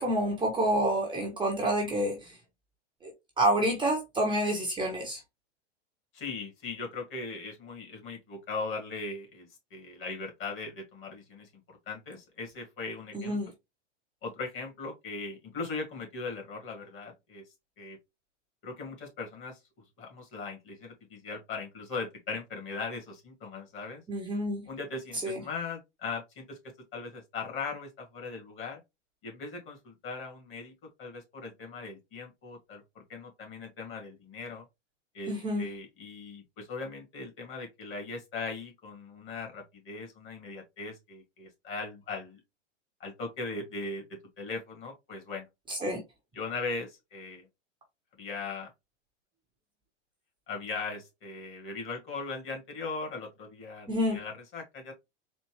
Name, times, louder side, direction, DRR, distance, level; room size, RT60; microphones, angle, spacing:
voice 1, 0.0-2.3 3.0-3.1 3.4-5.2 13.1-13.5 24.1-24.6 25.2-25.4 35.3-35.6 45.7-46.0 53.9-54.2, right 1 dB, 15° right, 1.0 m, -28 dB
voice 2, 6.1-11.5 11.9-13.4 14.2-17.4 17.8-18.0 18.6-19.6 20.0-24.0 24.7-26.6 26.9-28.8 29.2-30.7 31.0-34.6 35.1-42.4 43.0-45.5 46.3-47.5 48.2-48.7 50.5-54.9, left 4 dB, 35° left, 2.2 m, -39 dB
4.3 x 2.7 x 3.1 m
hypercardioid pair, 120°, 36 cm